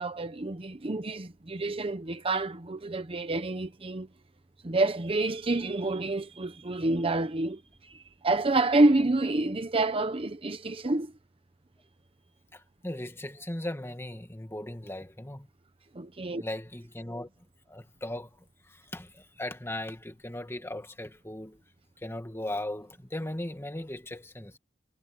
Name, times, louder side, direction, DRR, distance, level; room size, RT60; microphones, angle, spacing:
voice 1, 0.0-4.1 4.6-11.1 15.9-16.4, right 2 dB, 30° right, 0.8 m, -28 dB
voice 2, 12.5-15.5 16.2-17.3 17.7-21.6 22.0-24.6, left 1 dB, 15° left, 2.1 m, -38 dB
head